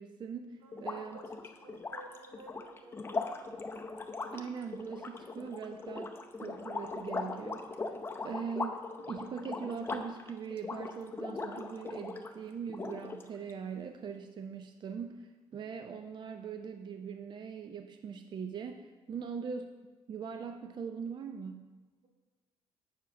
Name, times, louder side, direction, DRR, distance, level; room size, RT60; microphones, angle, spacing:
voice 1, 0.0-1.2 4.3-6.1 6.4-8.0 8.2-19.7 20.1-21.7, right 6 dB, 40° right, 7 dB, 0.4 m, -41 dB
voice 2, 0.6-1.3 1.6-3.2 19.1-19.2, right 3 dB, 85° right, 0 dB, 1.7 m, -54 dB
sound 1, 0.7-12.3 12.7-13.5, left 3 dB, 20° left, 0.6 m, -40 dB
7.5 x 4.7 x 5.9 m, 1.3 s
cardioid pair, 115°, 11 cm